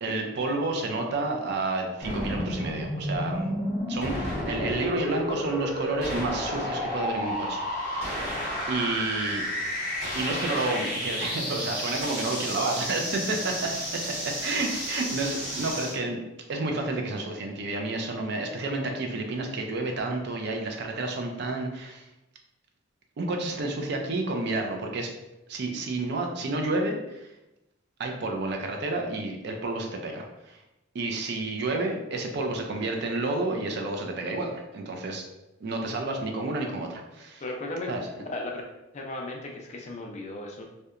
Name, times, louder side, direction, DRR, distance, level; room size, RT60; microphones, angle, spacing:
voice 1, 0.0-3.5 3.9-8.2 8.7-9.4 10.1-16.2 16.5-22.1 23.2-25.1 25.5-27.3 28.0-30.6 30.9-35.2 35.6-37.4 37.9-38.2, right 2 dB, 55° right, 3 dB, 0.4 m, -30 dB
sound 1, 2.0-16.0, equal, 35° right, 1.0 m, -31 dB
voice 2, 4.6-5.2 37.4-37.9 38.3-38.6 38.9-40.6, left 2 dB, 35° left, 1 dB, 0.4 m, -36 dB
2.8 x 2.1 x 2.3 m, 0.95 s
head